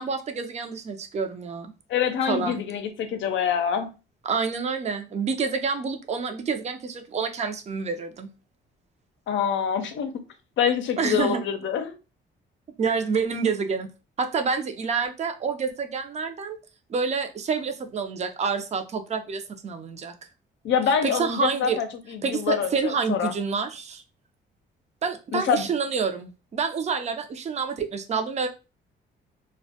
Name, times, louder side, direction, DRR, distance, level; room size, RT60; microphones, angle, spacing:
voice 1, 0.0-1.7 2.3-2.6 4.2-8.3 11.0-11.4 12.8-13.9 14.2-16.6 16.9-20.1 21.0-21.8 22.2-24.0 25.0-28.5, right 5 dB, 35° right, 0.5 m, -28 dB
voice 2, 1.9-3.9 9.3-10.1 10.6-11.9 20.6-23.3 25.3-25.7, left 7 dB, 70° left, 0.5 m, -25 dB
2.1 x 2.1 x 2.7 m
cardioid pair, 90°, 20 cm